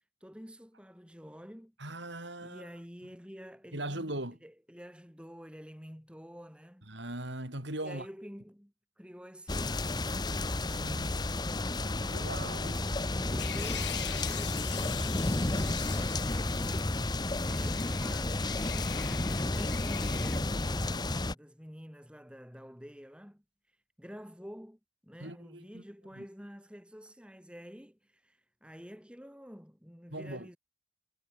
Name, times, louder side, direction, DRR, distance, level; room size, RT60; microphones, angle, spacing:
voice 1, 0.2-1.8 2.4-4.1 4.4-6.9 7.8-10.2 12.4-17.1 17.4-18.5 19.0-23.4 24.0-30.6, equal, 5° right, 7.0 m, -49 dB
voice 2, 1.8-2.7 3.7-4.4 6.9-8.1 10.6-11.1 12.1-12.8 25.2-25.8 26.2-26.3 30.1-30.5, right 1 dB, 65° right, 7.0 m, -39 dB
sound 1, 9.5-21.3, left 2 dB, 20° left, 0.8 m, -32 dB
sound 2, 13.4-16.9 17.1-20.4, left 11 dB, 60° left, 2.1 m, -43 dB
head